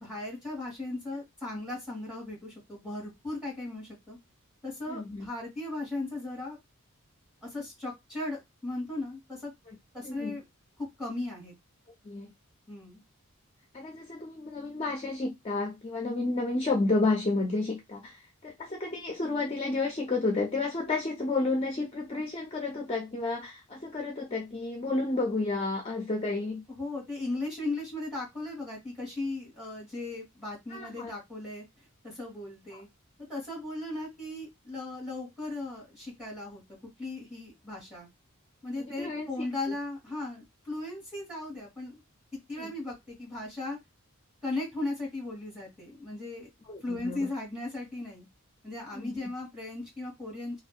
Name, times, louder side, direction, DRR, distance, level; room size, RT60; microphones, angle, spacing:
voice 1, 0.0-4.2 4.6-6.6 7.4-9.5 9.9-10.4 10.8-11.5 12.7-13.0 26.7-31.6 32.0-32.9 33.3-36.6 37.0-38.1 38.6-42.0 42.5-43.8 44.4-46.5 46.8-48.3 48.6-50.6, left 2 dB, 5° right, 1.3 m, -37 dB
voice 2, 4.9-5.3 9.7-9.8 10.0-10.4 12.0-12.3 13.7-26.6 30.7-31.1 32.7-32.8 38.8-39.3 42.6-42.7 46.6-47.3 48.9-49.2, left 3 dB, 25° left, 0.4 m, -31 dB
2.6 x 2.1 x 2.4 m
head